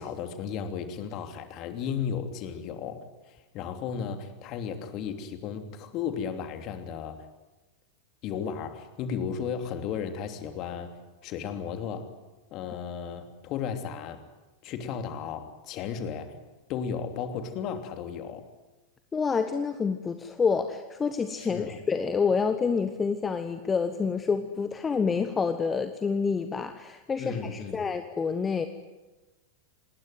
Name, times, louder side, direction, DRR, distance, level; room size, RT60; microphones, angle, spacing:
voice 1, 0.0-7.3 8.2-11.0 11.2-12.1 12.5-14.2 14.6-16.4 16.7-18.4 21.4-21.8 27.2-27.8, left 7 dB, 40° left, 7 dB, 3.0 m, -34 dB
voice 2, 19.1-28.7, left 5 dB, 15° left, 9 dB, 1.4 m, -28 dB
27.5 x 20.5 x 9.3 m, 1.1 s
figure-of-eight pair, 90°, 0 cm